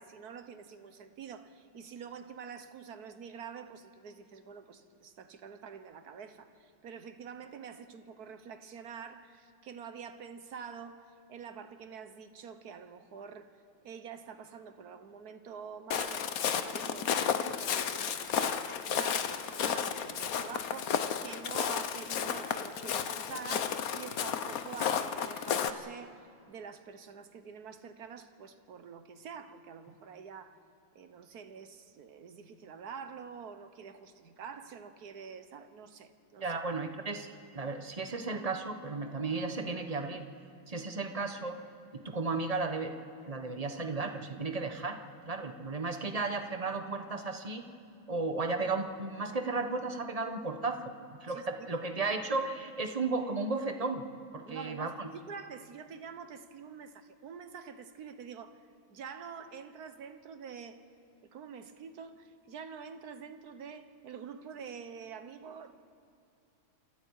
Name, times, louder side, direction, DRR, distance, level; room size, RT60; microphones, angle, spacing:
voice 1, 0.0-13.5 13.8-26.2 26.5-30.6 30.9-36.6 43.4-43.5 51.3-52.2 54.4-58.6 58.9-60.8 61.2-65.7, right 6 dB, 55° right, 9 dB, 1.4 m, -47 dB
Walk footsteps, 15.9-25.7, left 8 dB, 60° left, 1.0 m, -33 dB
voice 2, 36.4-37.3 37.5-40.3 40.7-41.6 41.9-42.9 43.2-45.0 45.3-47.6 48.1-50.9 51.2-54.0 54.3-55.1, right 3 dB, 30° right, 6 dB, 0.7 m, -34 dB
28.0 x 27.5 x 4.8 m, 2.6 s
omnidirectional pair, 2.3 m